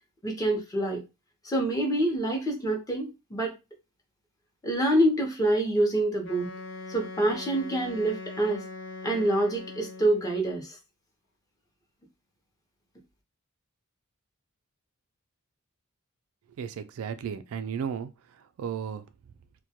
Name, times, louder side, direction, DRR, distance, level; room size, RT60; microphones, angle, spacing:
voice 1, 0.2-1.0 1.4-3.5 4.6-6.5 6.9-8.6 9.0-10.8, right 1 dB, 15° left, 0.6 m, -26 dB
Wind instrument woodwind instrument, 6.2-10.4, left 3 dB, 55° left, 0.6 m, -41 dB
voice 2, 16.6-18.1 18.6-19.0, right 7 dB, 80° right, 0.3 m, -34 dB
2.2 x 2.2 x 2.8 m
head